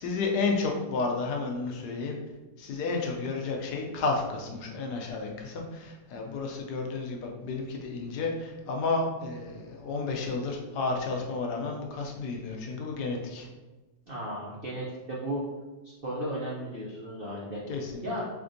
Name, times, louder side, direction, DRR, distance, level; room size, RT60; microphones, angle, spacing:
voice 1, 0.0-2.1 2.6-13.5 17.7-18.0, left 3 dB, 70° left, 1 dB, 1.1 m, -31 dB
voice 2, 14.1-15.4 16.0-17.6 18.0-18.2, right 1 dB, 75° right, -6 dB, 0.5 m, -34 dB
3.6 x 3.4 x 2.6 m, 1.2 s
omnidirectional pair, 2.0 m